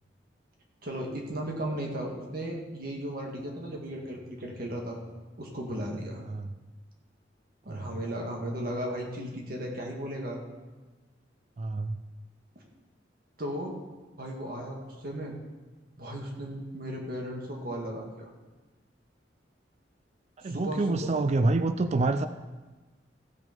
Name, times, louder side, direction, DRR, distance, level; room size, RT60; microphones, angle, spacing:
voice 1, 0.8-5.0 5.4-6.2 7.7-10.4 13.4-13.8 14.2-15.3 16.0-18.3 20.4-21.1, right 1 dB, 55° right, 0 dB, 1.9 m, -35 dB
voice 2, 7.7-8.0 11.6-12.0 20.4-22.3, right 2 dB, 40° right, 9 dB, 0.4 m, -27 dB
15.5 x 6.0 x 5.3 m, 1.3 s
head